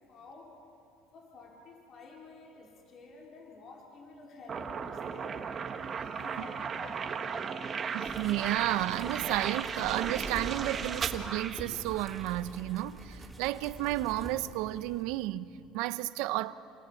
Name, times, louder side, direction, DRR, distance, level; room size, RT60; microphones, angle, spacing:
voice 1, 0.1-0.6 1.1-5.5 6.1-7.4, left 3 dB, 45° left, 4.4 m, -51 dB
sound 1, 4.5-12.3, right 6 dB, 30° right, 1.6 m, -36 dB
voice 2, 7.9-16.5, right 16 dB, 75° right, 0.8 m, -32 dB
sound 2, 8.1-15.0, right 1 dB, 10° right, 5.0 m, -46 dB
28.5 x 27.0 x 7.2 m
cardioid pair, 125°, 0 cm